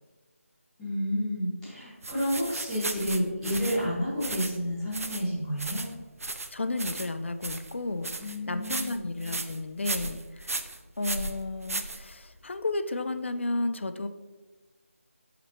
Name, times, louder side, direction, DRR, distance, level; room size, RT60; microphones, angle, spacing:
voice 1, 0.8-5.9 8.2-9.0, equal, 5° left, -13 dB, 1.1 m, -30 dB
sound 1, 2.0-12.5, right 2 dB, 80° right, 0.6 m, -36 dB
voice 2, 6.5-8.1 8.5-10.6 11.0-14.1, left 2 dB, 55° left, 10 dB, 0.5 m, -32 dB
7.7 x 5.0 x 2.9 m, 1.3 s
figure-of-eight pair, 175°, 8 cm